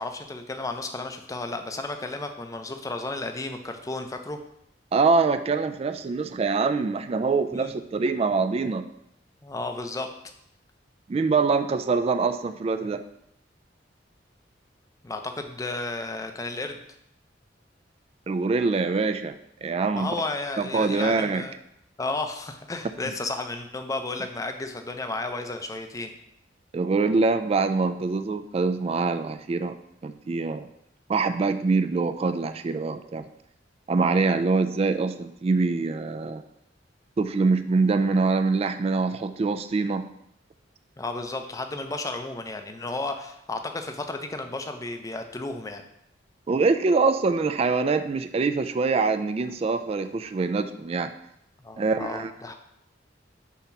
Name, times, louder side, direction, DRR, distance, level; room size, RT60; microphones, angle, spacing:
voice 1, 0.0-4.4 7.5-7.7 9.4-10.1 15.0-16.8 19.9-21.5 22.0-26.1 41.0-45.8 51.6-52.5, left 2 dB, 20° left, 6 dB, 0.5 m, -33 dB
voice 2, 4.9-8.9 11.1-13.0 18.3-19.3 19.6-20.1 20.6-21.4 26.7-29.8 30.0-30.7 31.1-33.2 33.9-36.4 37.2-40.1 46.5-51.1 51.8-52.3, right 4 dB, 35° right, 10 dB, 0.3 m, -24 dB
7.0 x 2.9 x 5.8 m, 0.76 s
head